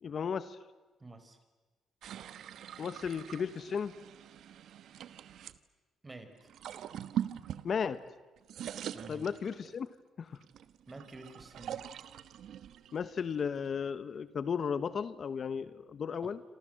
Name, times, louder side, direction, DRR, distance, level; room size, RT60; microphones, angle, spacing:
voice 1, 0.0-0.6 2.8-3.9 7.6-8.0 9.1-9.9 10.2-10.4 12.9-16.4, left 6 dB, 50° left, 14 dB, 1.1 m, -35 dB
voice 2, 1.0-1.4 6.0-6.4 8.9-9.3 10.9-11.8 16.2-16.3, right 2 dB, 25° right, 9 dB, 4.4 m, -49 dB
sound 1, 2.0-5.6 6.4-8.1 8.4-9.9 10.4-13.8, right 10 dB, 75° right, 1.2 m, -43 dB
27.5 x 27.0 x 7.8 m, 1.3 s
cardioid pair, 90°, 0 cm